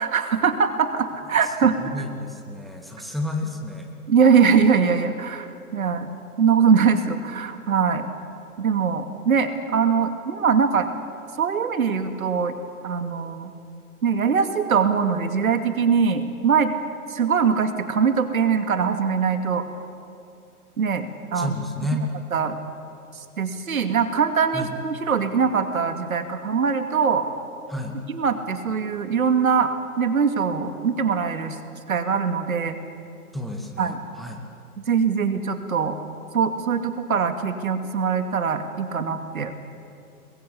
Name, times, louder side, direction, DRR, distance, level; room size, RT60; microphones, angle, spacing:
voice 1, 0.0-1.8 4.1-8.1 8.6-10.9 11.4-12.6 12.8-13.5 14.0-16.7 17.1-19.6 20.8-21.6 22.3-22.6 23.1-27.3 28.1-31.6 31.9-32.8 33.8-34.0 34.8-36.0 36.3-39.5, right 6 dB, 65° right, 8 dB, 2.6 m, -22 dB
voice 2, 1.4-4.0 21.3-22.0 24.5-24.7 27.7-28.0 33.3-34.4, left 1 dB, ahead, 2 dB, 2.1 m, -31 dB
30.0 x 22.0 x 8.5 m, 2.6 s
figure-of-eight pair, 125°, 46 cm